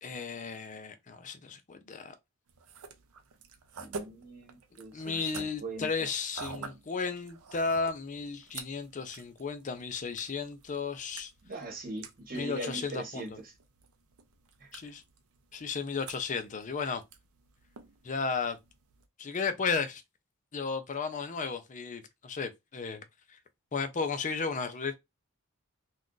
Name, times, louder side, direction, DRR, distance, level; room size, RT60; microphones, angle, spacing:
voice 1, 0.0-2.1 4.9-11.3 12.3-13.4 14.7-15.0 15.5-17.0 18.0-18.6 19.2-20.0 20.5-23.0 23.7-24.9, left 5 dB, 35° left, 0.5 m, -34 dB
sound 1, 2.5-19.1, right 5 dB, 80° right, 0.5 m, -49 dB
voice 2, 3.8-6.1 11.4-13.5 14.6-14.9, right 2 dB, 40° right, 1.1 m, -41 dB
2.4 x 2.3 x 3.7 m
head